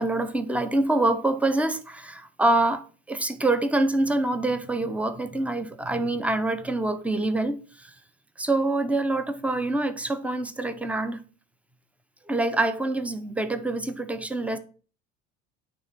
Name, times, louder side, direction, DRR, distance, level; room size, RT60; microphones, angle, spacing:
voice 1, 0.0-7.9 8.4-11.2 12.3-14.6, right 2 dB, 5° right, 0.9 m, -26 dB
9.3 x 3.5 x 5.9 m
hypercardioid pair, 80°, 37 cm